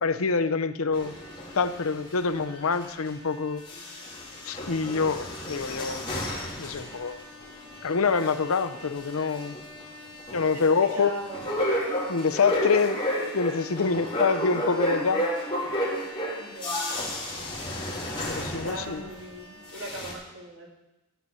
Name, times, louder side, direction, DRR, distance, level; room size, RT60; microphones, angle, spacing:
voice 1, 0.0-1.1 1.5-3.6 4.4-6.3 6.6-7.2 7.8-9.6 10.3-11.1 12.1-13.0 13.3-15.3 18.3-19.1, left 5 dB, 90° left, 11 dB, 0.7 m, -26 dB
sound 1, 0.9-3.3 3.6-19.3 19.6-20.1, equal, 25° left, 3.2 m, -33 dB
voice 2, 10.5-11.6 13.7-14.1 16.4-16.8 18.2-20.7, right 1 dB, 70° right, -3 dB, 3.1 m, -40 dB
13.5 x 5.6 x 8.2 m, 1.0 s
head